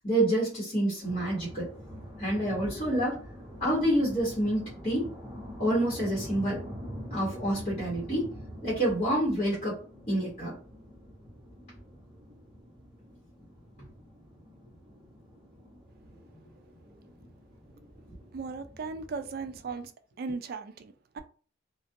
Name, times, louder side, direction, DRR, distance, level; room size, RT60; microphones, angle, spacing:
voice 1, 0.0-1.7 2.2-3.2 3.6-5.1 5.6-6.6 7.1-8.3 8.6-9.8 10.1-10.6, right 1 dB, 35° left, 1.0 m, -27 dB
sound 1, 1.0-19.9, equal, 20° right, 0.9 m, -45 dB
voice 2, 18.3-19.9 20.2-21.2, right 4 dB, 50° right, 0.3 m, -37 dB
2.4 x 2.2 x 2.5 m
head